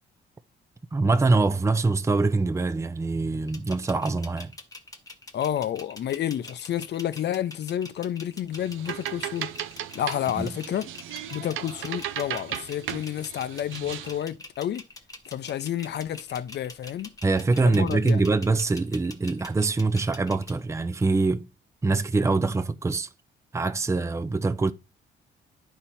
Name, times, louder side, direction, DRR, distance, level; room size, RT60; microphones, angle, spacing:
voice 1, 0.9-4.5 10.4-10.5 17.2-21.5 21.8-23.1 23.5-24.7, right 3 dB, 15° right, 0.5 m, -24 dB
sound 1, 3.5-20.6, left 2 dB, 15° left, 1.1 m, -44 dB
voice 2, 5.3-9.5 9.9-10.9 11.3-14.8 15.3-17.1 17.6-18.3, left 10 dB, 60° left, 0.7 m, -30 dB
sound 2, 8.5-14.2, right 11 dB, 90° right, 0.6 m, -36 dB
10.0 x 4.5 x 4.2 m
cardioid pair, 90°, 20 cm